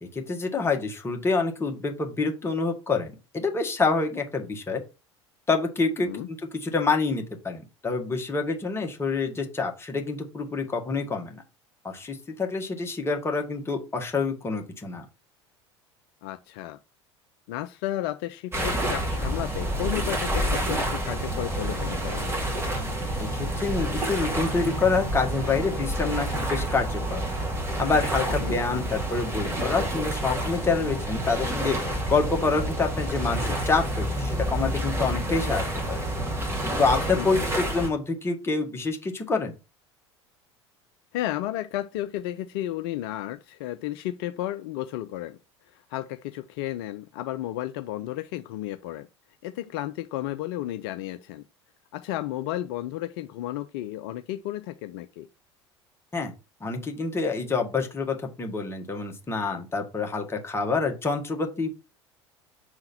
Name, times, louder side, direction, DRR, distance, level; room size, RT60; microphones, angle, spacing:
voice 1, 0.0-4.8 5.5-11.4 11.8-15.0 23.2-27.2 27.8-31.8 32.1-36.0 36.8-39.5 56.1-56.3 56.6-61.8, left 4 dB, 15° left, 1.6 m, -27 dB
voice 2, 16.2-16.8 17.5-22.3 28.4-28.6 37.2-37.5 41.1-45.4 45.7-49.1 49.4-51.4 51.9-55.3, left 14 dB, 55° left, 0.4 m, -33 dB
sound 1, 18.5-37.9, right 1 dB, 15° right, 2.2 m, -28 dB
6.4 x 3.9 x 4.3 m
figure-of-eight pair, 70°, 15 cm